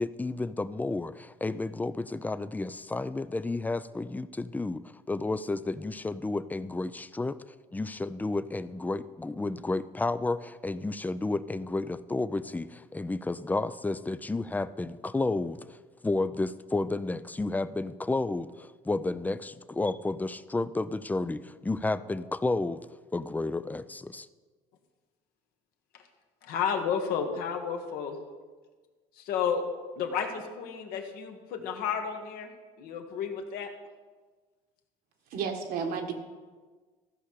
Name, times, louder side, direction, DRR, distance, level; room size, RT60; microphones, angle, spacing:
voice 1, 0.0-7.4 7.7-15.8 16.0-22.8 23.1-24.3, left 2 dB, 10° left, 14 dB, 0.4 m, -31 dB
voice 2, 26.4-28.2 29.2-29.6 30.0-32.5 32.8-33.7, left 7 dB, 70° left, 4 dB, 1.6 m, -31 dB
voice 3, 35.3-36.1, right 6 dB, 70° right, 5 dB, 1.6 m, -32 dB
14.5 x 5.6 x 6.6 m, 1.4 s
supercardioid pair, 90°, 16 cm